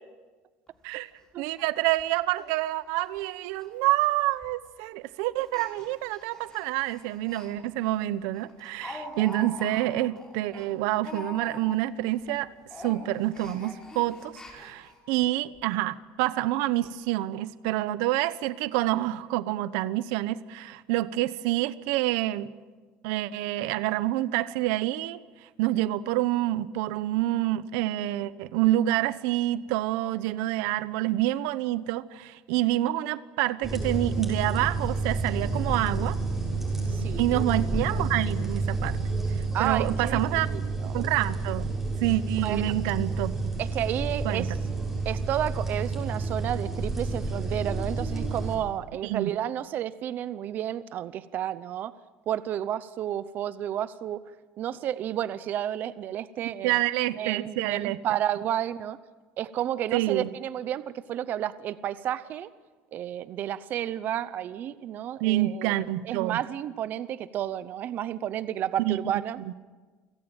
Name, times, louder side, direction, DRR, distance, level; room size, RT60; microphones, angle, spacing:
Speech, 0.7-0.8 1.1-1.2 1.6-1.7 2.0-2.1 2.6-2.7 3.0-3.3 3.5-3.7 4.4-4.7 5.4-7.5 7.9-8.0 8.3-11.9 12.2-12.4 12.7-15.0 15.5-15.6 15.9-16.0, left 2 dB, 15° left, 5.7 m, -44 dB
voice 1, 1.4-12.5 12.8-22.5 23.0-25.2 25.6-36.2 37.2-39.0 39.4-40.5 40.9-43.5 44.2-44.6 49.0-49.3 56.6-58.0 59.9-60.3 65.2-66.4 68.8-69.0 69.4-69.5, right 15 dB, 85° right, 16 dB, 0.9 m, -27 dB
sound 1, 33.6-48.5, right 3 dB, 5° right, 6.4 m, -30 dB
voice 2, 36.9-37.4 39.5-41.0 42.4-42.7 43.6-44.5 45.0-51.9 52.3-54.2 54.6-56.8 57.2-59.0 59.4-62.5 62.9-69.4, right 11 dB, 40° right, 15 dB, 0.7 m, -31 dB
28.5 x 17.0 x 9.0 m, 1.4 s
cardioid pair, 160°, 5 cm